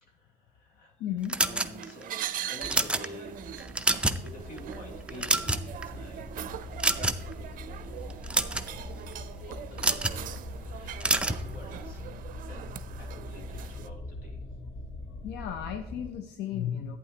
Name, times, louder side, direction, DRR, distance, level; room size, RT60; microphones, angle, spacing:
voice 1, 0.0-0.9 1.5-3.4 4.2-6.3 6.8-8.2 8.6-12.0 12.4-14.4, left 1 dB, 55° left, -1 dB, 2.8 m, -49 dB
voice 2, 1.0-1.4 12.1-12.2 15.2-17.0, left 9 dB, 85° left, 8 dB, 0.6 m, -34 dB
sound 1, 1.3-2.0 2.5-3.1 3.6-4.3 4.6-4.7 5.1-5.8 6.8-7.3 8.1-8.7 9.8-10.2 11.0-11.4, right 2 dB, 5° right, 0.5 m, -26 dB
sound 2, 1.3-13.9, right 10 dB, 55° right, 0.5 m, -41 dB
sound 3, 3.2-16.1, left 2 dB, 35° left, 0.8 m, -42 dB
11.0 x 9.0 x 2.9 m, 0.92 s
cardioid pair, 110°, 17 cm